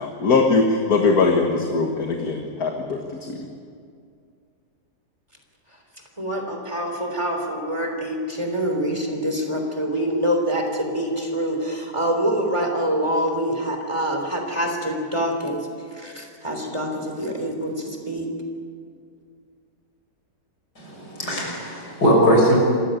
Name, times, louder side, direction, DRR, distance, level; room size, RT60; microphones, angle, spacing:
voice 1, 0.0-3.5, left 4 dB, 70° left, 2 dB, 2.1 m, -21 dB
voice 2, 6.2-15.6 15.9-18.3, equal, 15° right, 2 dB, 3.5 m, -25 dB
voice 3, 20.8-22.6, equal, 85° left, -2 dB, 6.7 m, -19 dB
27.5 x 15.0 x 9.1 m, 2.3 s
omnidirectional pair, 1.7 m